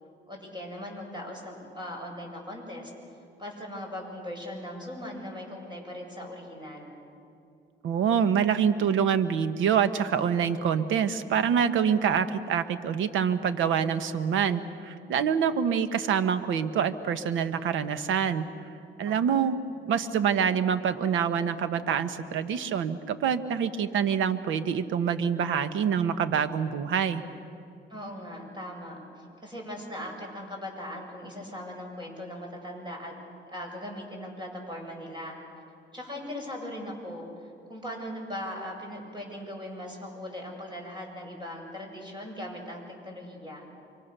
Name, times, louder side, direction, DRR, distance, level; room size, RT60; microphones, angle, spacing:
voice 1, 0.3-2.9 3.4-7.0 19.1-19.4 27.9-33.1 33.5-35.4 35.9-37.3 37.7-43.7, left 1 dB, 25° right, 1 dB, 7.5 m, -39 dB
voice 2, 7.8-18.4 19.0-19.6 19.8-27.2, right 7 dB, 80° right, 11 dB, 1.3 m, -26 dB
29.5 x 24.5 x 6.8 m, 2.5 s
cardioid pair, 90°, 20 cm